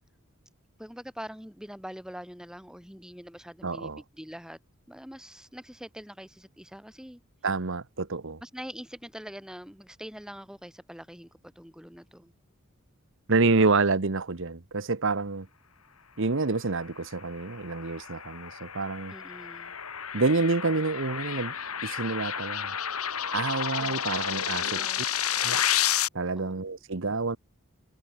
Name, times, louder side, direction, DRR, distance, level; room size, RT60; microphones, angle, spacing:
voice 1, 0.8-4.6 4.9-7.2 8.4-11.3 11.6-12.3 13.4-13.7 19.1-19.8 23.8-24.0 24.6-25.1 26.3-26.7, equal, 5° right, 5.9 m, -44 dB
voice 2, 3.6-4.0 7.4-8.4 13.3-15.5 16.2-19.1 20.1-21.5 21.8-22.7 23.3-24.8 25.4-25.6 26.1-27.4, right 3 dB, 60° right, 1.1 m, -28 dB
sound 1, 17.2-26.1, left 9 dB, 85° left, 5.0 m, -31 dB
head